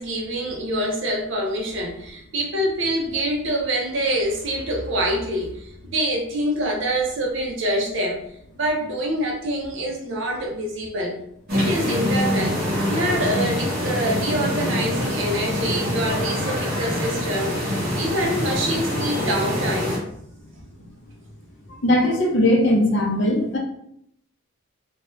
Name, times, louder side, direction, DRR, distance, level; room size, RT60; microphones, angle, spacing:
voice 1, 0.0-8.2 8.6-11.1 11.5-12.6 12.9-20.0, right 1 dB, 60° right, -1 dB, 0.7 m, -25 dB
sound 1, 11.5-20.0, left 1 dB, 45° right, 1.0 m, -25 dB
voice 2, 21.7-23.6, left 1 dB, 55° left, 0 dB, 0.6 m, -19 dB
2.7 x 2.2 x 3.1 m, 0.72 s
head